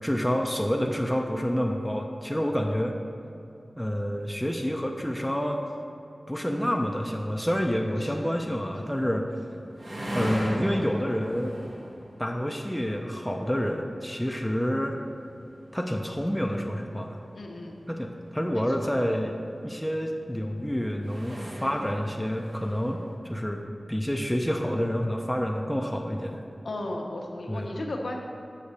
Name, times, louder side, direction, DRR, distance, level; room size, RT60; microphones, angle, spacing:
voice 1, 0.0-3.0 3.8-5.6 6.3-9.3 10.1-11.5 12.2-15.0 15.7-17.2 17.9-19.3 19.6-23.6 23.9-26.4 27.5-27.7, equal, 5° left, 1 dB, 0.5 m, -28 dB
sound 1, 9.3-23.1, equal, 60° right, 1.2 m, -41 dB
voice 2, 17.4-17.8 18.5-18.9 26.6-28.2, left 1 dB, 80° left, 1 dB, 0.8 m, -35 dB
6.6 x 5.9 x 4.2 m, 2.7 s
wide cardioid pair, 70°, 0 cm